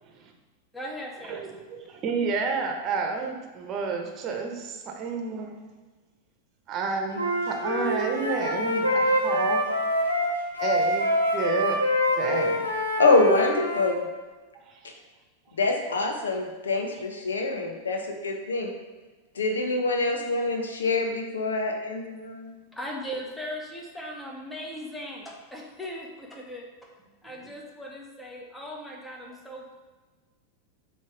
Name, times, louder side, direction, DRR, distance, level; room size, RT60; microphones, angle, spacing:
voice 1, 0.7-1.5 22.7-26.9 27.2-29.8, equal, 5° left, -1 dB, 1.2 m, -38 dB
voice 2, 1.2-5.7 6.7-9.7 10.6-12.7 14.7-14.8, right 4 dB, 35° right, 3 dB, 1.1 m, -31 dB
Wind instrument woodwind instrument, 7.1-14.0, equal, 90° left, 1.2 m, -25 dB
voice 3, 13.0-14.0 15.6-18.7 19.4-22.5, left 3 dB, 70° left, 3 dB, 0.9 m, -25 dB
7.5 x 3.1 x 4.7 m, 1.3 s
figure-of-eight pair, 90°, 0 cm